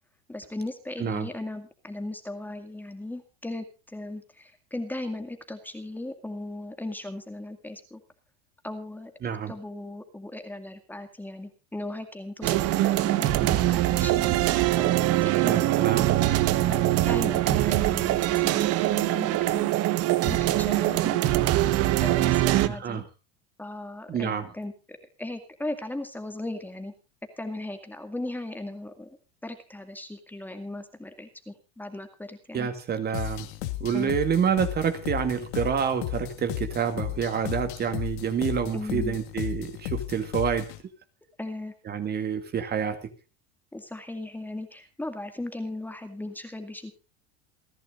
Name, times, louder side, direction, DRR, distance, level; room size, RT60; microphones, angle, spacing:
voice 1, 0.3-8.0 8.6-9.1 9.5-14.4 14.8-15.9 16.7-16.8 17.1-19.7 20.2-21.5 22.0-23.0 23.6-26.9 27.4-29.1 29.4-32.7 33.9-34.2 38.7-39.1 41.4-41.7 42.2-42.3 43.7-46.9, left 1 dB, 5° left, 7 dB, 2.2 m, -37 dB
voice 2, 9.2-9.5 15.4-16.1 22.7-23.0 24.1-24.5 32.5-33.5 33.8-40.7 41.9-43.1, right 7 dB, 30° right, 8 dB, 2.3 m, -28 dB
sound 1, 12.4-22.7, right 15 dB, 50° right, 1.2 m, -23 dB
sound 2, 33.1-40.8, left 15 dB, 80° left, 1.9 m, -34 dB
28.5 x 11.0 x 2.5 m, 0.30 s
supercardioid pair, 130°, 32 cm